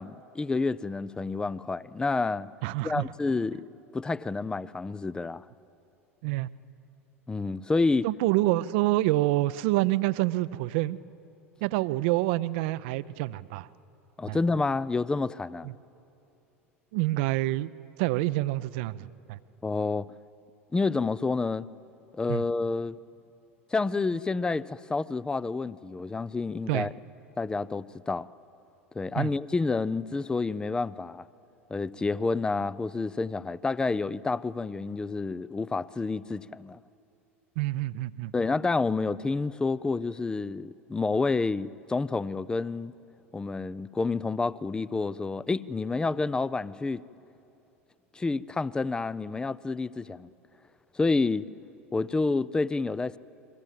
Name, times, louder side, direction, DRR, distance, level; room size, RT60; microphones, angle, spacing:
voice 1, 0.0-2.5 2.8-3.7 3.9-5.4 7.3-8.1 14.2-15.7 19.6-20.1 20.7-21.7 22.1-23.0 23.7-26.9 27.4-28.3 28.9-31.3 31.7-36.8 38.3-42.9 43.3-47.0 48.2-50.3 51.0-51.5 51.9-53.2, left 3 dB, 10° left, 0.5 m, -29 dB
voice 2, 2.6-3.1 6.2-6.5 8.0-11.0 11.6-13.7 14.3-14.4 15.6-15.7 16.9-17.7 18.0-19.4 22.3-22.4 26.7-26.9 29.2-29.3 37.6-38.3, right 18 dB, 50° right, 0.6 m, -27 dB
29.5 x 22.5 x 7.6 m
figure-of-eight pair, 80°, 7 cm